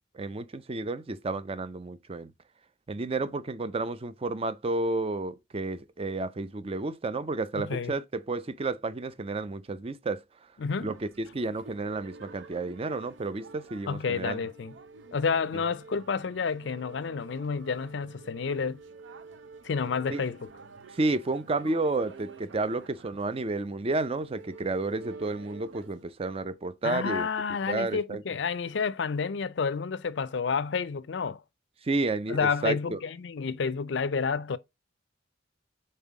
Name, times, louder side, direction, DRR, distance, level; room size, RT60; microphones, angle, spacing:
voice 1, 0.1-2.3 2.9-10.2 10.8-14.4 20.1-20.2 20.9-27.3 27.7-28.2 31.8-33.0, right 3 dB, 30° right, 0.5 m, -31 dB
voice 2, 7.5-7.9 10.6-10.9 13.9-14.7 15.1-18.8 19.6-20.5 26.8-31.4 32.3-34.6, left 5 dB, 65° left, 0.5 m, -30 dB
sound 1, 10.7-26.0, right 4 dB, 75° right, 0.6 m, -49 dB
5.5 x 4.4 x 4.7 m
head